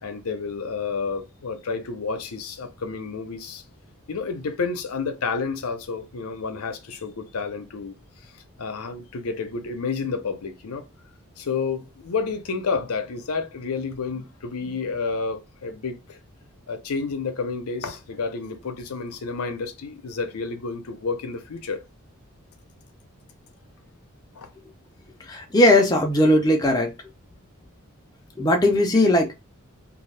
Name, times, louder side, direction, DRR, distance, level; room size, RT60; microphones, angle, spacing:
voice 1, 0.0-3.6 4.1-8.0 8.6-10.9 11.4-16.2 16.7-21.8 24.3-24.5, left 4 dB, 90° left, 0.6 m, -30 dB
voice 2, 25.2-26.9 28.4-29.3, left 1 dB, 20° left, 0.5 m, -18 dB
2.7 x 2.4 x 3.2 m
head